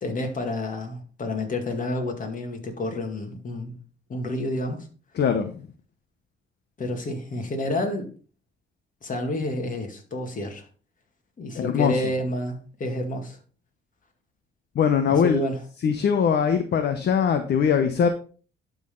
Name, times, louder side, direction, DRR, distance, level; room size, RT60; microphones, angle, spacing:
voice 1, 0.0-3.8 4.1-4.9 6.8-8.1 9.0-10.7 11.4-13.4 15.0-15.6, left 1 dB, 40° left, 2.2 m, -29 dB
voice 2, 5.2-5.6 11.5-12.0 14.7-15.4 15.8-18.1, left 7 dB, 55° left, 0.9 m, -21 dB
11.5 x 4.0 x 3.8 m
cardioid pair, 90°, 20 cm